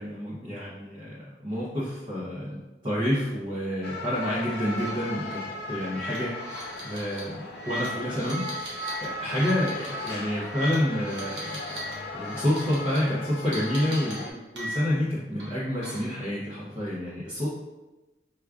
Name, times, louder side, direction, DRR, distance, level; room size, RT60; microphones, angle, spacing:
voice 1, 0.0-2.6 2.8-5.4 5.7-11.6 12.1-17.5, equal, 25° right, -8 dB, 0.6 m, -29 dB
sound 1, 3.8-14.3, left 1 dB, 60° left, 0.4 m, -37 dB
sound 2, 4.7-4.9 5.2-5.3 5.9-11.9 12.2-13.0 13.5-15.0 15.4-16.2, equal, 85° right, 1.1 m, -39 dB
4.7 x 2.2 x 2.4 m, 1.1 s
head